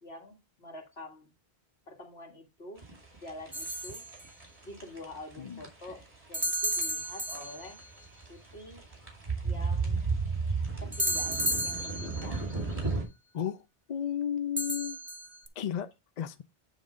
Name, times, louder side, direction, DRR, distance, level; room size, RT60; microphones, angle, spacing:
voice 1, 0.0-1.3 1.9-2.8 3.2-4.0 4.6-7.8 8.3-8.8 9.4-10.0 10.8-12.4, left 1 dB, 70° left, 2.2 m, -46 dB
sound 1, 2.8-13.0, right 4 dB, 30° right, 2.6 m, -34 dB
sound 2, 3.5-4.2 6.3-7.8 10.9-12.4 14.6-15.5, right 1 dB, 15° right, 0.7 m, -33 dB
voice 2, 13.3-15.0 15.6-16.4, left 9 dB, 50° left, 0.5 m, -34 dB
9.4 x 3.7 x 5.0 m
omnidirectional pair, 1.1 m